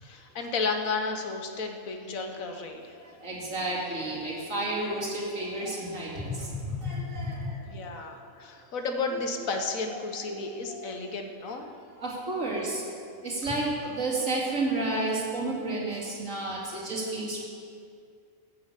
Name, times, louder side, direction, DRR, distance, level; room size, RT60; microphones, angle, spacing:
voice 1, 0.0-3.0 7.7-11.7, left 4 dB, 90° left, 4 dB, 1.6 m, -33 dB
voice 2, 3.0-7.5 7.9-8.3 9.1-9.2 9.9-10.0 10.3-10.8 12.0-12.8 13.2-17.4, right 2 dB, 70° right, -4 dB, 3.0 m, -31 dB
13.0 x 7.0 x 8.2 m, 2.3 s
omnidirectional pair, 1.4 m